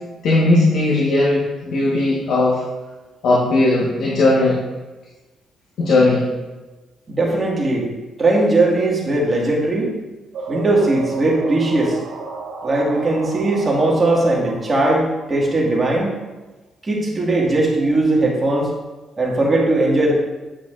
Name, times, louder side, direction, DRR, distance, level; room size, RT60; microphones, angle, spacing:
voice 1, 0.2-2.6 3.2-4.6 5.8-6.3, left 2 dB, 70° left, -5 dB, 1.2 m, -17 dB
voice 2, 7.1-7.9 8.2-9.9 10.5-12.0 12.6-16.1 16.8-18.7 19.2-20.1, right 2 dB, 30° right, -3 dB, 1.8 m, -18 dB
sound 1, 10.3-16.1, right 4 dB, 75° right, 1.9 m, -33 dB
8.6 x 5.8 x 2.5 m, 1.2 s
cardioid pair, 90°, 0 cm